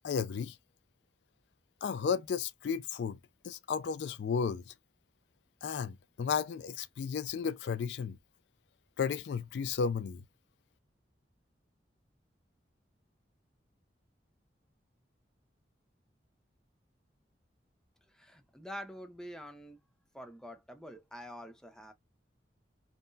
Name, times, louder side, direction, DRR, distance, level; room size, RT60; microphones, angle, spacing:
voice 1, 0.0-0.6 1.8-3.2 3.4-4.7 5.6-8.2 9.0-10.2, left 6 dB, 70° left, 0.3 m, -33 dB
voice 2, 18.1-19.8 20.1-21.9, equal, 5° left, 0.5 m, -46 dB
3.7 x 2.1 x 2.6 m
head